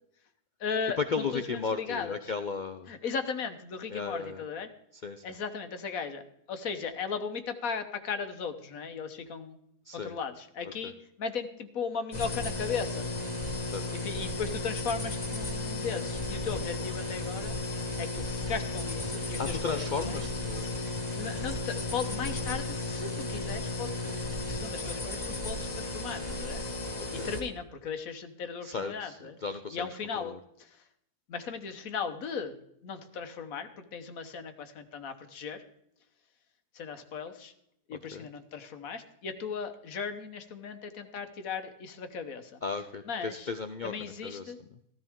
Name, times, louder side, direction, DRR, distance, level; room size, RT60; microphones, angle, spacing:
voice 1, 0.6-2.3 2.9-4.7 5.2-6.2 6.5-9.6 9.9-13.1 13.9-17.6 18.0-20.2 20.9-26.6 27.1-29.4 29.7-30.8 31.3-32.6 32.8-35.6 36.7-37.5 37.9-42.6 43.0-43.5 43.8-44.6, left 6 dB, 60° left, 8 dB, 1.5 m, -37 dB
voice 2, 1.1-2.9 3.9-4.4 5.0-5.2 9.9-10.1 10.8-10.9 13.6-13.9 19.4-20.9 27.0-27.3 28.6-29.9 30.2-30.4 38.1-38.3 42.6-44.5, left 4 dB, 90° left, 8 dB, 0.4 m, -35 dB
sound 1, 12.1-27.4, left 2 dB, 25° left, 1.6 m, -34 dB
15.0 x 13.5 x 3.6 m, 0.75 s
omnidirectional pair, 1.7 m